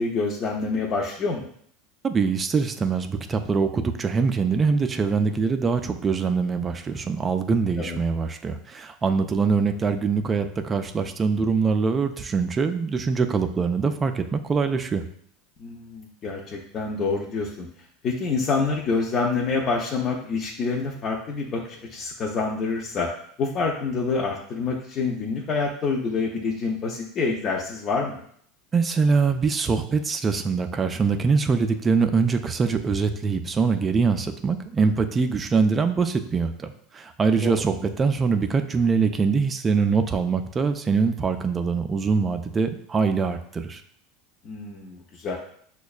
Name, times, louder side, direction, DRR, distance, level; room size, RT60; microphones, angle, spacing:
voice 1, 0.0-1.5 7.8-8.0 15.6-17.7 18.0-23.1 23.4-28.2 37.4-37.6 44.4-45.4, left 4 dB, 40° left, -2 dB, 0.5 m, -27 dB
voice 2, 2.0-15.0 28.7-43.8, right 5 dB, 20° right, 8 dB, 0.3 m, -23 dB
6.0 x 2.2 x 2.3 m, 0.63 s
supercardioid pair, 120°, 0 cm